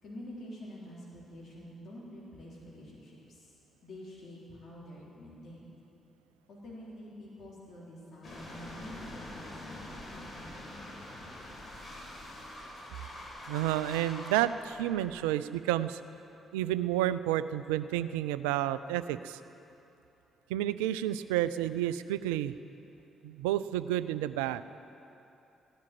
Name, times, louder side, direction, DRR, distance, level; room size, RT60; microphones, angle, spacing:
voice 1, 0.0-3.5 3.8-5.7 6.5-10.6, left 1 dB, 55° left, -6 dB, 3.8 m, -47 dB
sound 1, 8.2-15.2, left 1 dB, 35° left, 4.6 m, -45 dB
voice 2, 13.5-16.0 16.5-19.4 20.5-22.5 23.2-24.6, right 13 dB, 75° right, 14 dB, 0.4 m, -30 dB
16.0 x 11.0 x 7.6 m, 2.9 s
figure-of-eight pair, 40°, 0 cm